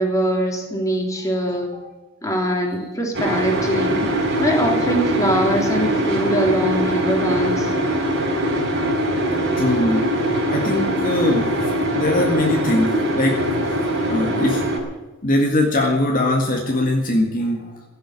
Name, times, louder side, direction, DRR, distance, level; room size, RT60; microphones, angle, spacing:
voice 1, 0.0-1.7 2.2-4.1 4.4-7.7, right 1 dB, 15° left, 1 dB, 3.2 m, -22 dB
voice 2, 2.3-2.9 3.3-3.5 4.2-4.9 6.9-7.0 7.6-7.7 8.9-9.2 9.6-14.6 15.2-17.8, left 1 dB, 45° left, 1 dB, 1.9 m, -23 dB
sound 1, 3.1-14.8, right 1 dB, 60° right, 4.9 m, -22 dB
16.0 x 7.9 x 9.8 m, 1.1 s
head